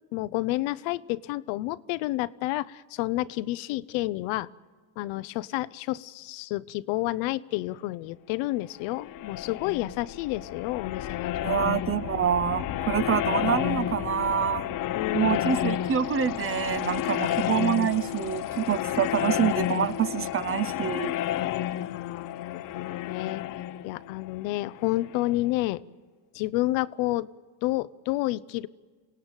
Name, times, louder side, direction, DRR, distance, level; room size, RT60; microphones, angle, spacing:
voice 1, 0.1-4.5 5.0-11.7 14.9-15.5 21.8-23.4 23.8-25.8 26.3-27.3 27.6-28.7, left 18 dB, 80° left, 17 dB, 0.8 m, -30 dB
sound 1, 8.8-25.4, left 12 dB, 45° left, 0.8 m, -31 dB
voice 2, 11.4-14.7 15.1-21.1, right 9 dB, 30° right, 13 dB, 0.7 m, -26 dB
26.5 x 18.0 x 9.1 m, 1.4 s
cardioid pair, 110°, 45 cm